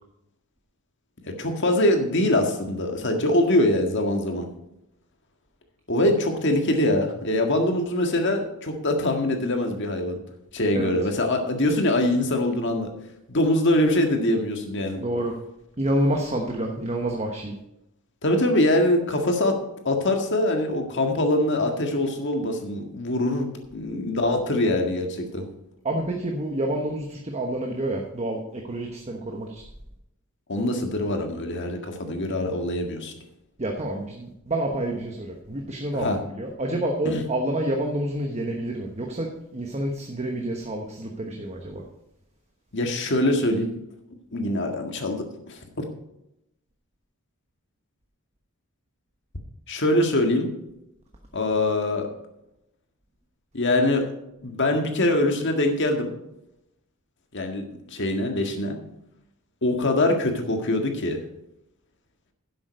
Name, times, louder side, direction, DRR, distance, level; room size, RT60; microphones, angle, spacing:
voice 1, 1.3-4.5 5.9-10.2 10.5-12.9 13.3-15.0 18.2-19.6 19.9-25.5 30.5-33.1 35.9-36.2 37.0-37.2 42.7-43.7 44.3-45.6 49.7-50.5 51.3-52.1 53.5-54.0 54.4-56.1 57.3-58.8 59.6-61.2, left 1 dB, 55° left, 4 dB, 1.8 m, -23 dB
voice 2, 15.0-15.3 15.8-17.5 25.8-29.6 33.6-41.8, right 1 dB, 30° right, 2 dB, 1.1 m, -28 dB
11.0 x 7.8 x 5.2 m, 0.85 s
head